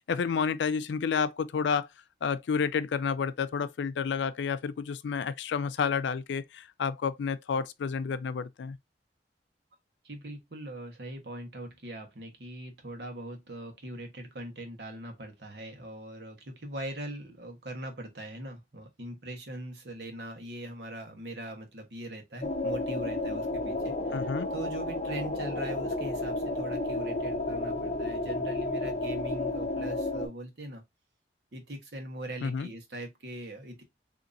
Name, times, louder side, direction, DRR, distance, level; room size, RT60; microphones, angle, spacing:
voice 1, 0.1-1.9 2.2-8.8 24.1-24.5 32.4-32.7, left 6 dB, 80° left, 0.4 m, -30 dB
voice 2, 10.0-24.2 24.5-30.8 31.5-33.8, right 1 dB, 65° right, 1.2 m, -41 dB
sound 1, 22.4-30.3, left 2 dB, 40° left, 0.7 m, -32 dB
3.7 x 2.8 x 2.5 m
head